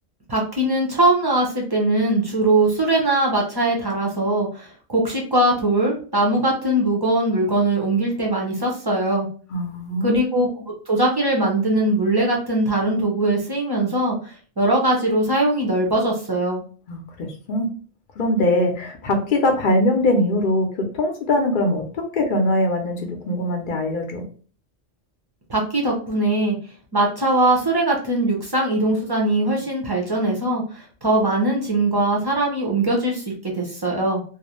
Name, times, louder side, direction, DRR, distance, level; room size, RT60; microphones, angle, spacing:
voice 1, 0.3-9.3 10.0-10.5 10.9-16.6 25.5-26.6 26.9-34.2, right 2 dB, 35° right, -1 dB, 0.3 m, -21 dB
voice 2, 9.5-10.2 16.9-17.7 18.2-24.2, left 1 dB, 55° left, 3 dB, 0.6 m, -22 dB
2.4 x 2.0 x 2.9 m, 0.41 s
omnidirectional pair, 1.2 m